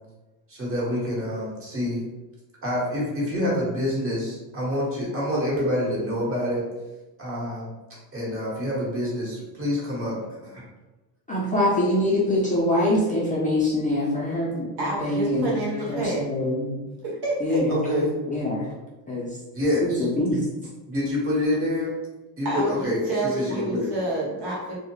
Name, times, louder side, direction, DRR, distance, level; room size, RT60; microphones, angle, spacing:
voice 1, 0.5-2.0 2.6-6.6 7.2-7.7 8.1-10.6 17.7-18.1 19.5-20.1 20.9-21.9 22.4-23.0 23.3-23.9, left 1 dB, 30° right, -5 dB, 1.2 m, -27 dB
voice 2, 11.3-16.7 17.4-18.7 19.1-19.4 19.8-20.5 23.8-23.9, left 1 dB, 15° left, -5 dB, 0.5 m, -24 dB
voice 3, 14.8-16.2 17.2-17.6 22.4-24.8, right 1 dB, 60° right, -5 dB, 1.2 m, -28 dB
2.3 x 2.2 x 3.0 m, 1.1 s
supercardioid pair, 90°, 46 cm